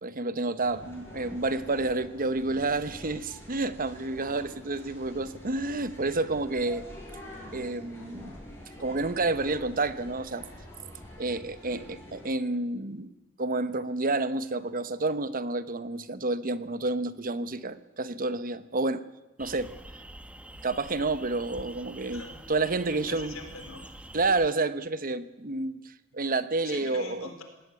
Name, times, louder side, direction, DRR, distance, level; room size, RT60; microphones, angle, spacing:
voice 1, 0.0-6.8 7.5-8.4 8.8-10.5 11.2-13.1 13.4-19.0 19.4-19.7 20.6-22.2 22.5-23.3 24.1-27.3, right 3 dB, 45° right, 13 dB, 1.0 m, -29 dB
sound 1, 0.6-12.3, left 1 dB, 15° left, 7.1 m, -46 dB
sound 2, 19.4-24.5, right 1 dB, 5° right, 1.1 m, -46 dB
voice 2, 22.1-22.4 22.9-23.8 26.6-27.4, left 3 dB, 85° left, 7 dB, 4.2 m, -43 dB
19.5 x 17.5 x 9.6 m, 1.1 s
head